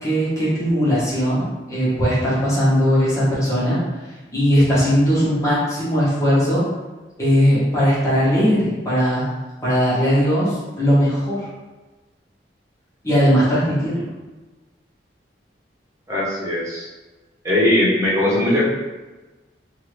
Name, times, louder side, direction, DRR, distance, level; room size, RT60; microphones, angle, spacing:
voice 1, 0.0-3.8 4.3-6.6 7.2-9.2 9.6-11.5 13.0-14.0, equal, 20° left, -9 dB, 1.0 m, -19 dB
voice 2, 16.1-16.9 17.4-18.7, left 1 dB, 15° right, -7 dB, 0.9 m, -19 dB
2.6 x 2.6 x 3.1 m, 1.2 s
head